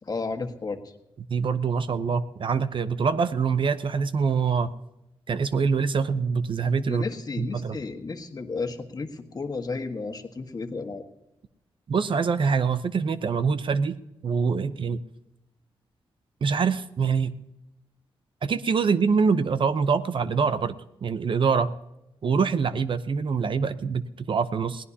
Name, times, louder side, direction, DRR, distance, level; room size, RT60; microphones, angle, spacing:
voice 1, 0.0-0.8 6.9-11.0, left 4 dB, 40° left, 5 dB, 1.5 m, -33 dB
voice 2, 1.3-4.7 5.3-7.0 7.4-7.8 11.9-13.9 14.2-15.0 16.4-17.3 18.4-21.7 22.2-24.8, right 5 dB, 55° right, 12 dB, 0.7 m, -25 dB
21.0 x 17.5 x 2.8 m, 0.90 s
cardioid pair, 65°, 10 cm